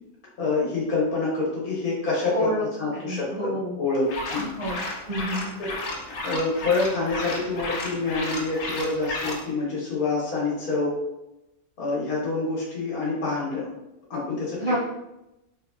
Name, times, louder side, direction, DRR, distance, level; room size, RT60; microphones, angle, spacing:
voice 1, 0.4-4.5 5.6-5.7 6.2-11.0 11.8-13.7 14.1-14.8, left 3 dB, 85° left, -5 dB, 1.6 m, -27 dB
voice 2, 2.3-2.6 3.0-3.7 4.6-5.5 14.6-14.8, equal, 70° right, -6 dB, 0.3 m, -28 dB
sound 1, 4.1-9.4, left 2 dB, 65° left, 0.8 m, -33 dB
3.2 x 3.1 x 2.4 m, 0.91 s
omnidirectional pair, 1.5 m